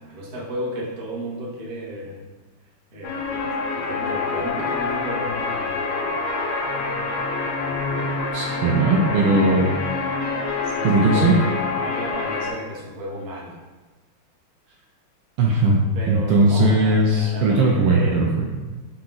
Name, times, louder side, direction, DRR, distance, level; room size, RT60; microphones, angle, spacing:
voice 1, 0.0-2.2 2.9-6.1 7.6-8.2 10.6-13.6 15.9-18.3, equal, 45° right, -4 dB, 0.6 m, -34 dB
sound 1, 3.0-12.5, left 4 dB, 80° left, 1.5 m, -26 dB
voice 2, 8.3-9.7 10.8-11.3 15.4-15.8 16.1-18.4, right 2 dB, 75° right, -1 dB, 1.1 m, -18 dB
4.8 x 2.9 x 3.8 m, 1.3 s
omnidirectional pair, 2.4 m